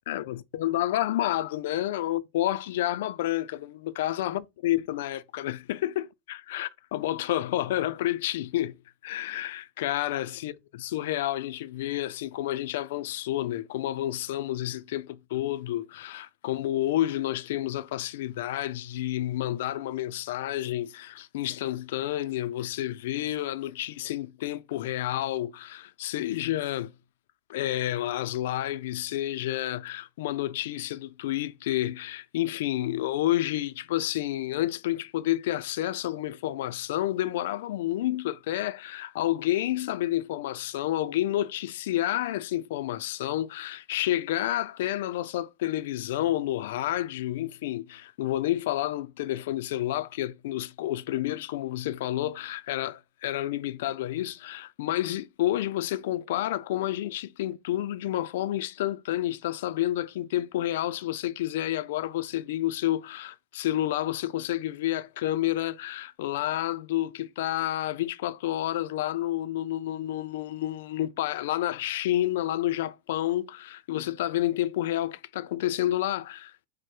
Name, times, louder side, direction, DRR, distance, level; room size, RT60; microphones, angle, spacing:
voice 1, 0.1-8.8 9.0-10.5 10.8-26.9 27.5-76.7, left 14 dB, 75° left, 0.3 m, -30 dB
4.7 x 2.0 x 4.3 m
supercardioid pair, 160°, 0 cm